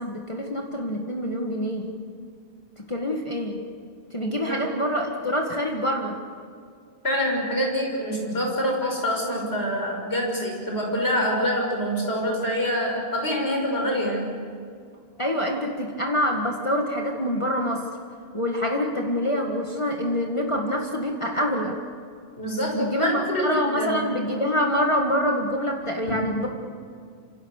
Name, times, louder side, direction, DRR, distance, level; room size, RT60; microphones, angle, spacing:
voice 1, 0.0-1.9 2.9-3.6 4.1-6.2 15.2-17.8 18.3-21.8 22.7-26.5, equal, 30° left, 0 dB, 1.9 m, -26 dB
voice 2, 4.2-4.6 7.0-14.2 22.4-24.0, equal, 75° left, 0 dB, 6.8 m, -26 dB
27.5 x 27.0 x 6.6 m, 2.2 s
omnidirectional pair, 1.1 m